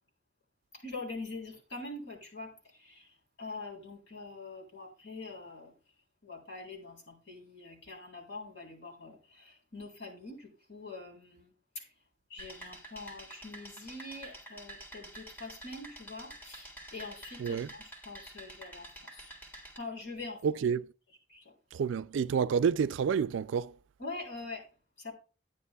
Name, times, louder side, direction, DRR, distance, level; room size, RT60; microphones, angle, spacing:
voice 1, 0.8-3.1 3.4-5.7 6.2-11.5 11.8-11.9 12.3-19.3 19.8-20.4 21.3-21.5 24.0-24.6 25.0-25.1, left 3 dB, 70° left, 3.6 m, -44 dB
sound 1, 12.4-19.8, right 1 dB, 10° left, 1.8 m, -49 dB
voice 2, 17.4-17.7 20.4-20.9 21.7-23.7, right 6 dB, 85° right, 0.3 m, -29 dB
11.0 x 9.3 x 2.3 m
head